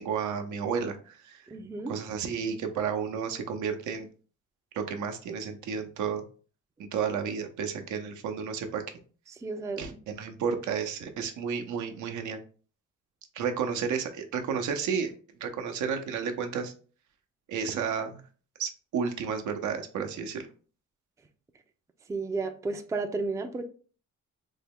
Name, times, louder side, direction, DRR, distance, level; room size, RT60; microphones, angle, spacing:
voice 1, 0.0-1.4 1.9-4.1 4.7-6.2 6.9-8.8 9.8-12.4 13.3-15.1 15.4-16.7 17.5-18.2 18.6-20.5, right 6 dB, 75° right, 6 dB, 0.7 m, -32 dB
voice 2, 1.5-1.9 9.4-10.0 22.1-23.7, right 3 dB, 10° right, 7 dB, 0.4 m, -32 dB
3.5 x 2.2 x 3.5 m, 0.40 s
cardioid pair, 90°, 30 cm